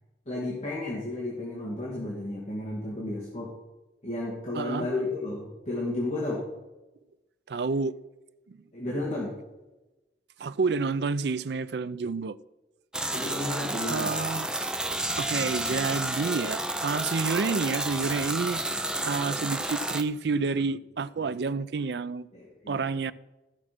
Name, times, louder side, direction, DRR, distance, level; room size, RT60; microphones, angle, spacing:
voice 1, 0.3-3.5 4.0-6.5 8.7-9.4 13.1-14.1 22.3-22.9, left 2 dB, 40° left, 2.5 m, -32 dB
voice 2, 4.5-4.9 7.5-7.9 8.5-8.6 10.4-12.4 13.9-14.5 15.2-22.3 22.7-23.1, right 4 dB, 70° right, 0.4 m, -29 dB
sound 1, 12.9-20.0, right 1 dB, 5° right, 0.6 m, -30 dB
14.5 x 6.2 x 6.0 m
head